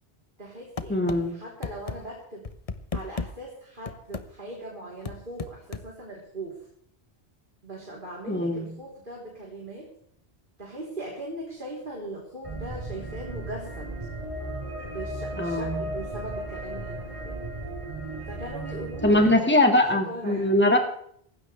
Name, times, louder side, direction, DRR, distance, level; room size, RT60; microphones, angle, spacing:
voice 1, 0.4-2.4 2.9-6.6 7.6-9.9 10.6-13.9 14.8-17.4 18.3-19.7 20.1-20.5, right 1 dB, 55° right, -3 dB, 4.0 m, -39 dB
sound 1, 0.8-1.2 1.6-2.0 2.4-3.3 3.9-4.3 5.0-5.9, left 4 dB, 35° left, 1.0 m, -33 dB
voice 2, 0.9-1.3 8.3-8.7 15.4-15.8 19.0-20.8, left 1 dB, 10° left, 3 dB, 2.1 m, -21 dB
sound 2, 12.4-19.3, right 1 dB, 30° right, 4.0 m, -35 dB
18.0 x 16.0 x 3.4 m, 0.65 s
omnidirectional pair, 1.0 m